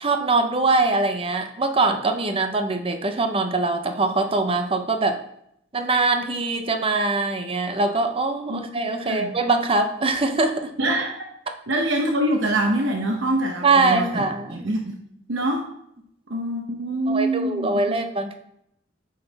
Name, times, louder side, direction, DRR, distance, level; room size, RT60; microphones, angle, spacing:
voice 1, 0.0-5.2 5.7-10.7 13.6-14.7 17.1-18.3, right 3 dB, 30° right, 6 dB, 0.7 m, -22 dB
voice 2, 10.8-11.1 11.7-14.9 15.3-15.7 16.3-17.9, right 1 dB, 80° right, 1 dB, 0.8 m, -25 dB
8.8 x 3.8 x 4.1 m, 0.74 s
head